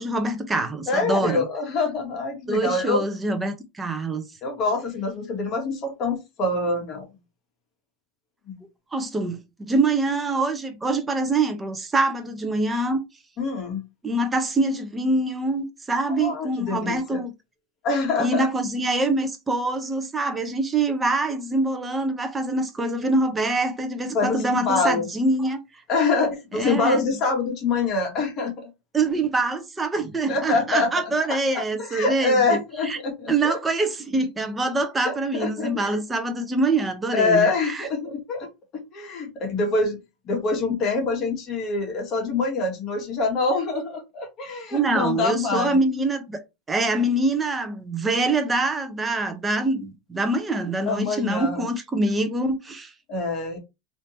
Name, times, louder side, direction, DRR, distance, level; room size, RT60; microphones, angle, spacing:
voice 1, 0.0-1.5 2.5-4.3 8.9-13.0 14.0-17.3 18.2-25.6 26.5-27.1 28.9-32.6 32.8-33.0 33.3-37.9 44.7-46.4 46.7-52.9, right 2 dB, 15° right, 0.8 m, -25 dB
voice 2, 0.9-3.0 4.4-7.1 8.5-8.6 13.4-13.8 16.1-17.2 17.8-18.5 24.1-25.1 25.9-28.7 30.3-33.6 35.0-36.0 37.1-40.0 40.2-45.8 50.9-51.7 53.1-53.6, left 3 dB, 40° left, 1.4 m, -25 dB
3.4 x 2.8 x 2.9 m
supercardioid pair, 120°, 0 cm